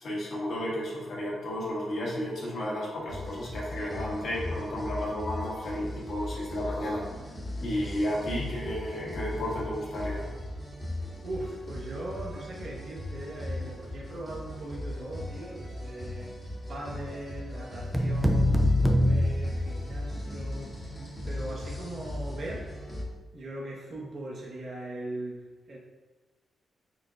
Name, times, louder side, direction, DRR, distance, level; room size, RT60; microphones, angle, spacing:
voice 1, 0.0-7.0 7.6-10.3, left 1 dB, 65° left, -5 dB, 1.4 m, -32 dB
sound 1, 3.1-23.0, left 1 dB, 25° left, 1.0 m, -38 dB
voice 2, 11.2-16.4 16.7-20.7 21.2-22.7 23.3-25.8, right 1 dB, 60° right, -3 dB, 1.1 m, -40 dB
sound 2, 17.9-20.2, left 1 dB, 5° right, 0.4 m, -24 dB
4.5 x 3.6 x 2.5 m, 1.3 s
cardioid pair, 95°, 0 cm